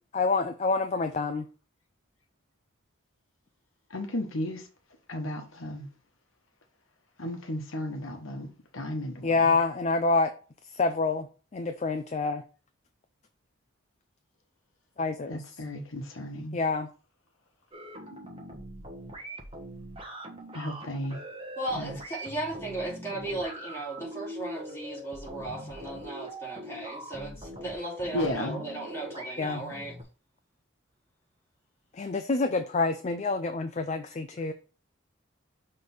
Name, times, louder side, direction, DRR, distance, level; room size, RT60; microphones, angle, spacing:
voice 1, 0.1-1.5 9.2-10.3 10.7-11.3 11.5-12.4 15.0-15.4 16.5-16.9 29.4-29.6 31.9-34.5, left 3 dB, 35° left, 0.4 m, -27 dB
voice 2, 3.9-4.7 5.1-5.9 7.2-8.5 8.7-9.5 15.3-16.6 20.5-21.2 21.7-22.0 28.1-28.6, left 1 dB, 70° left, 1.0 m, -34 dB
sound 1, 17.7-30.0, right 1 dB, 25° right, 1.2 m, -42 dB
voice 3, 21.6-29.9, right 2 dB, 10° left, 2.6 m, -36 dB
6.1 x 3.3 x 5.4 m
head